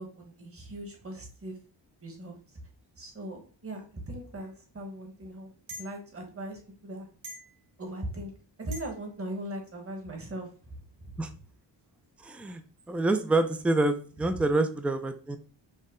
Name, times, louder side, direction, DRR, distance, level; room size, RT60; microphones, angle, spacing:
voice 1, 0.0-1.6 2.0-2.6 3.0-5.5 5.8-7.1 7.8-8.3 8.6-11.1 14.3-14.4, right 1 dB, 30° right, 2 dB, 1.3 m, -39 dB
sound 1, 5.7-5.9 7.2-7.6 8.7-8.9, equal, 50° right, 1.8 m, -42 dB
voice 2, 12.2-12.6 12.9-15.4, right 2 dB, 5° right, 9 dB, 0.3 m, -27 dB
5.5 x 2.1 x 3.7 m, 0.40 s
cardioid pair, 95°, 44 cm